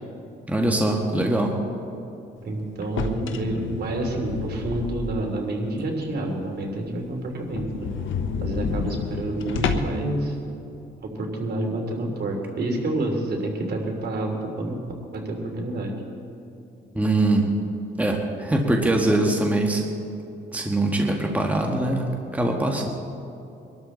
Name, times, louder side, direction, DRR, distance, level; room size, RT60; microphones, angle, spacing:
voice 1, 0.5-1.5 16.9-17.5 18.0-19.9 20.5-22.9, right 1 dB, 5° right, 1 dB, 1.7 m, -22 dB
voice 2, 2.4-7.9 8.4-10.4 11.0-14.8 15.1-15.9, right 2 dB, 55° right, 1 dB, 3.2 m, -28 dB
sound 1, 2.8-5.4 5.8-5.9 6.3-6.4 6.7-6.8 7.0-7.1 7.5-10.1, left 5 dB, 75° left, 1.2 m, -30 dB
24.0 x 12.5 x 4.0 m, 2.8 s
cardioid pair, 90°, 20 cm